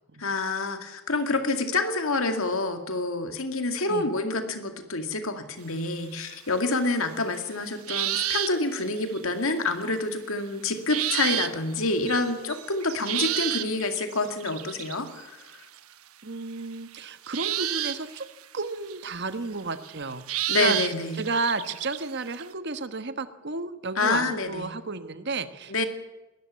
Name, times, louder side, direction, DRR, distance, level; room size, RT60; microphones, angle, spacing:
voice 1, 0.2-15.4 20.5-21.2 24.0-24.7 25.7-25.9, left 3 dB, 65° left, 7 dB, 2.2 m, -27 dB
sound 1, 5.8-5.9 7.9-9.3 10.9-11.7 12.1-15.8 17.3-18.7 18.9-19.0 19.6-22.5, right 12 dB, 75° right, 1.2 m, -30 dB
voice 2, 16.2-18.3 18.5-20.8 21.2-25.8, right 3 dB, 50° right, 11 dB, 1.3 m, -32 dB
20.0 x 13.5 x 9.6 m, 1.1 s
head